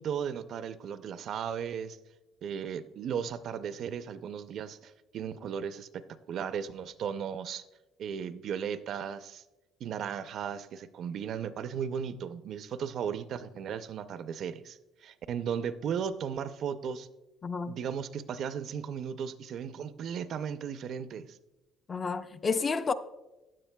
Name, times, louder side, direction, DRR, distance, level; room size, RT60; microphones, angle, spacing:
voice 1, 0.0-2.0 2.4-6.0 6.3-7.6 8.0-9.4 9.8-17.1 17.7-21.4, right 7 dB, 45° right, 0.4 m, -36 dB
voice 2, 17.4-17.8 21.9-22.9, left 5 dB, 20° left, 0.3 m, -30 dB
15.0 x 9.9 x 2.2 m
cardioid pair, 175°, 0 cm